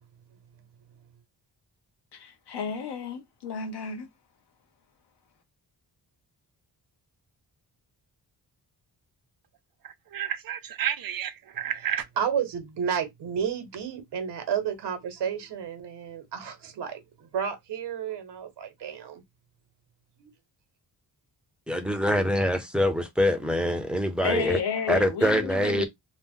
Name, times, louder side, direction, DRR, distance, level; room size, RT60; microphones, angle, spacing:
voice 1, 2.1-4.1 24.2-25.9, left 6 dB, 75° left, 0.8 m, -32 dB
voice 2, 9.8-12.0, right 9 dB, 60° right, 0.6 m, -31 dB
voice 3, 12.2-19.2 20.2-20.3, right 7 dB, 80° right, 0.9 m, -31 dB
voice 4, 21.7-24.6 24.9-25.8, equal, ahead, 0.5 m, -24 dB
2.8 x 2.0 x 3.5 m
wide cardioid pair, 145°, 41 cm